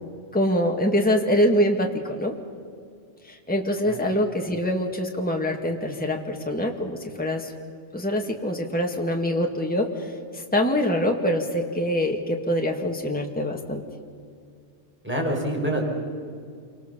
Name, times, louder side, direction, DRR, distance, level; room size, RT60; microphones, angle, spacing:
voice 1, 0.3-2.3 3.2-7.5 7.9-13.8, equal, 5° left, 1 dB, 2.0 m, -24 dB
voice 2, 15.0-15.8, right 1 dB, 10° right, 0 dB, 5.2 m, -26 dB
28.0 x 25.0 x 6.9 m, 2.2 s
omnidirectional pair, 1.2 m